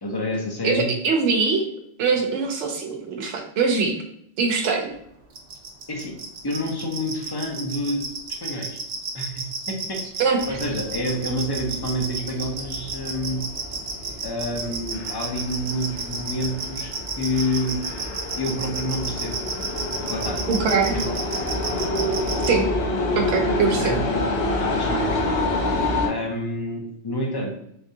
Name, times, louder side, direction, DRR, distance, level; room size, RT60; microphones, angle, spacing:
voice 1, 0.0-0.9 5.9-6.1 6.4-8.0 8.3-8.8 9.1-13.4 14.2-16.9 17.2-17.8 18.4-19.4 20.1-20.4 20.7-21.2 23.0-24.2 24.6-25.3 26.0-27.5, left 1 dB, 25° left, 1 dB, 0.5 m, -28 dB
voice 2, 0.6-1.7 2.0-4.0 4.4-4.9 10.2-10.4 20.5-21.0 22.5-22.6 23.2-23.9, right 5 dB, 90° right, 3 dB, 0.9 m, -22 dB
sound 1, 5.4-22.5, right 5 dB, 65° right, 0.8 m, -31 dB
sound 2, 10.4-26.1, left 1 dB, 65° left, 0.9 m, -28 dB
3.4 x 3.4 x 2.7 m, 0.74 s
omnidirectional pair, 1.2 m